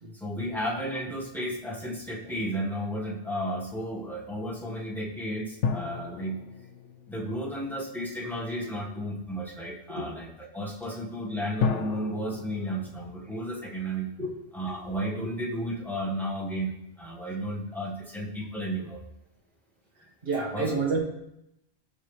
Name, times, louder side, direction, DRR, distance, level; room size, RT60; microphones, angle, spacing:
voice 1, 0.1-6.4 7.1-10.3 10.5-14.1 14.5-19.0 20.5-21.0, equal, ahead, -4 dB, 1.4 m, -33 dB
sound 1, 5.6-8.2 11.6-14.2 14.5-14.6, left 5 dB, 85° left, 0.9 m, -34 dB
voice 2, 20.0-21.0, right 3 dB, 55° right, -2 dB, 1.7 m, -30 dB
13.0 x 5.4 x 3.2 m, 0.84 s
omnidirectional pair, 1.2 m